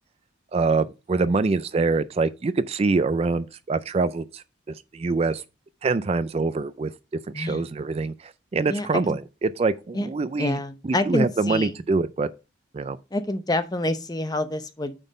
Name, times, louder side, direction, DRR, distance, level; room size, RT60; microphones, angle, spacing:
voice 1, 0.5-5.4 5.8-6.9 7.3-10.6 10.8-12.3 12.7-13.0, right 3 dB, 30° right, 0.3 m, -25 dB
voice 2, 7.3-7.7 8.7-9.2 9.9-10.1 10.4-11.8 13.1-15.0, left 1 dB, 20° left, 0.7 m, -27 dB
9.0 x 4.0 x 5.1 m
head